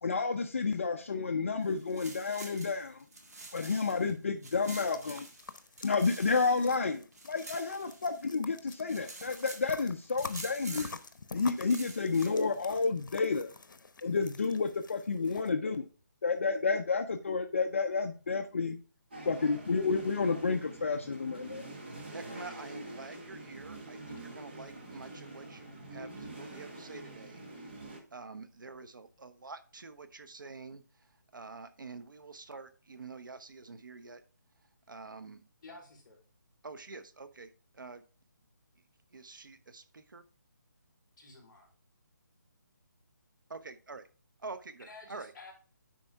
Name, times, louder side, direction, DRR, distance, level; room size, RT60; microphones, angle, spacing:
voice 1, 0.0-3.0 3.5-5.3 5.8-10.9 11.3-13.5 14.0-15.8 16.2-18.8 19.3-21.6, left 4 dB, 40° left, 6 dB, 0.5 m, -30 dB
sound 1, 1.6-4.1 4.4-8.4 8.7-9.7 10.2-11.1 11.5-12.6, right 2 dB, 55° right, 1.9 m, -48 dB
sound 2, 4.6-15.5, left 4 dB, 80° left, 0.8 m, -48 dB
sound 3, 19.1-28.0, right 2 dB, 30° right, 1.4 m, -46 dB
voice 2, 22.1-27.8 28.1-34.2 34.9-35.4 36.6-38.0 39.1-40.2 43.5-44.1 44.4-45.3, right 4 dB, 85° right, 12 dB, 1.0 m, -47 dB
voice 3, 35.6-36.2 41.2-41.6 44.8-45.5, left 3 dB, 20° left, -8 dB, 3.4 m, -51 dB
10.0 x 4.3 x 3.4 m, 0.37 s
hypercardioid pair, 175°, 10 cm